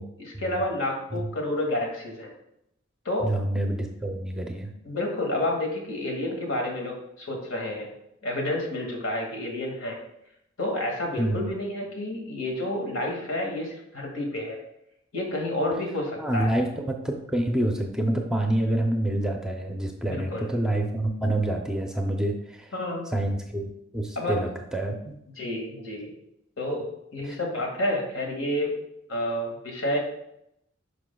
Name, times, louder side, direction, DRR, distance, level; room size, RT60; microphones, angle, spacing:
voice 1, 0.2-2.3 3.1-3.3 4.8-7.9 8.2-10.0 10.6-14.6 15.1-16.6 20.0-20.5 22.7-23.1 24.2-24.4 25.4-26.1 26.6-26.9 27.1-28.7 29.1-30.0, left 1 dB, 80° left, 0 dB, 2.0 m, -29 dB
voice 2, 3.2-4.7 11.2-11.5 16.2-22.7 23.1-25.2 27.2-27.4, right 1 dB, 5° right, 2 dB, 0.5 m, -27 dB
11.0 x 5.1 x 2.3 m, 0.80 s
head